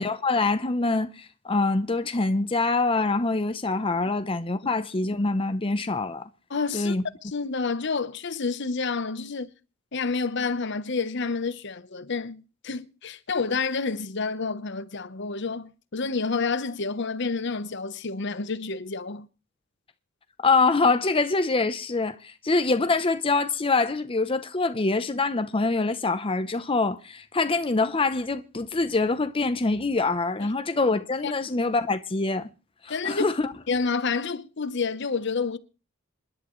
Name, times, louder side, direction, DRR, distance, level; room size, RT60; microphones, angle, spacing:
voice 1, 0.0-6.3 6.7-7.0 20.4-32.5 32.8-33.5, left 3 dB, 25° left, 0.7 m, -25 dB
voice 2, 6.5-7.0 7.2-9.5 9.9-19.3 30.4-30.5 31.2-31.3 32.9-33.3 33.7-35.6, left 4 dB, 60° left, 0.9 m, -29 dB
27.0 x 11.0 x 3.1 m
head